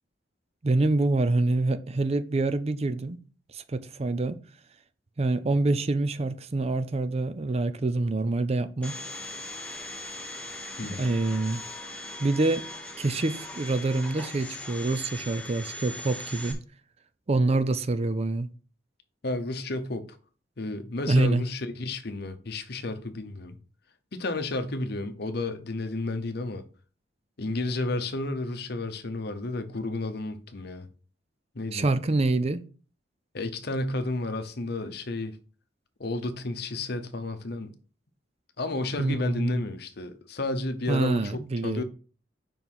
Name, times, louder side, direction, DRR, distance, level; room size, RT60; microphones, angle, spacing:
voice 1, 0.6-3.2 3.5-4.4 5.2-9.0 10.8-11.6 12.2-12.7 13.0-16.6 17.3-18.5 21.1-21.4 31.7-32.6 39.0-39.6 40.9-41.8, right 2 dB, 35° right, 0.5 m, -26 dB
Domestic sounds home sounds, 8.8-16.5, left 1 dB, 5° left, 1.2 m, -40 dB
voice 2, 10.8-11.1 19.2-20.2 20.6-23.6 24.1-26.6 27.4-30.9 31.5-31.9 33.3-35.4 36.0-37.7 38.6-41.8, left 2 dB, 60° left, 0.8 m, -32 dB
5.4 x 4.7 x 5.5 m
head